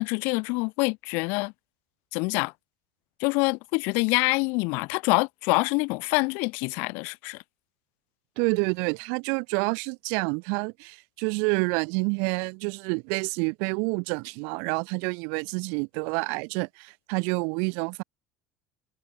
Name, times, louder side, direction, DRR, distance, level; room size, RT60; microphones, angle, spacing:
voice 1, 0.0-1.5 2.1-2.5 3.2-7.4, left 30 dB, 70° left, 0.8 m, -26 dB
voice 2, 8.4-18.0, right 38 dB, 70° right, 1.0 m, -28 dB
cardioid pair, 155°, 4 cm